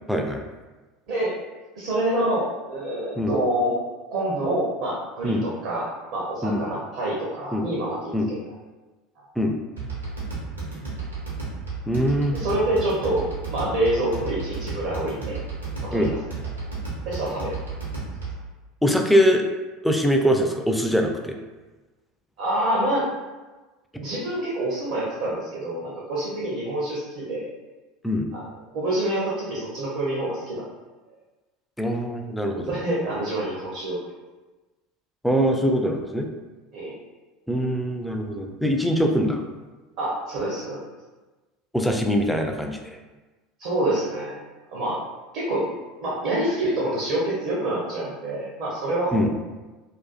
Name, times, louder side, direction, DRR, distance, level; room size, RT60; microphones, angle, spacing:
voice 1, 0.1-0.4 3.2-3.3 5.2-5.4 6.4-6.6 7.5-7.7 8.1-8.3 9.4-9.6 11.9-12.4 15.9-16.1 18.8-19.4 19.8-21.4 28.0-28.3 31.8-32.7 35.2-36.3 37.5-39.4 41.7-42.8 49.1-49.3, equal, ahead, 3 dB, 0.3 m, -22 dB
voice 2, 1.7-3.7 4.1-8.4 9.2-9.3 12.3-15.4 15.8-16.1 17.1-17.6 22.4-23.1 24.0-27.5 28.3-28.4 28.7-30.6 32.7-34.0 36.7-37.0 40.0-40.8 43.6-44.3 44.7-45.0 45.3-45.6 46.0-49.3, right 1 dB, 55° right, -5 dB, 0.6 m, -26 dB
sound 1, 9.8-18.5, right 4 dB, 85° right, 0.8 m, -33 dB
2.4 x 2.3 x 2.3 m, 1.2 s
figure-of-eight pair, 75°, 0 cm